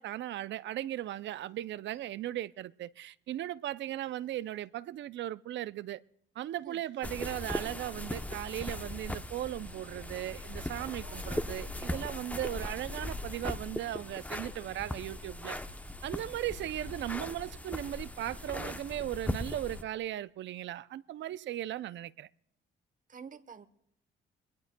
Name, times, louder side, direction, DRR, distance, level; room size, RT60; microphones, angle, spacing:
voice 1, 0.0-6.0 6.4-15.6 16.0-22.3, right 13 dB, 65° right, 0.5 m, -37 dB
sound 1, 7.0-19.8, left 1 dB, 5° left, 0.7 m, -39 dB
voice 2, 23.1-23.7, right 6 dB, 45° right, 1.0 m, -48 dB
22.5 x 20.0 x 2.2 m
cardioid pair, 90°, 20 cm